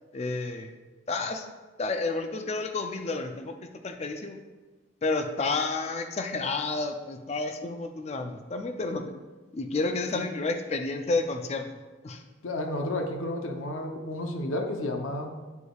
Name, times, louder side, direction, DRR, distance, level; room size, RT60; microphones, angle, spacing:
voice 1, 0.1-0.7 1.1-1.5 1.8-3.6 3.8-4.4 5.0-9.1 9.5-11.7 12.0-12.2, left 3 dB, 30° left, 6 dB, 0.4 m, -30 dB
voice 2, 12.4-15.3, left 1 dB, 85° left, 4 dB, 0.7 m, -31 dB
8.0 x 5.0 x 2.3 m, 1.3 s
head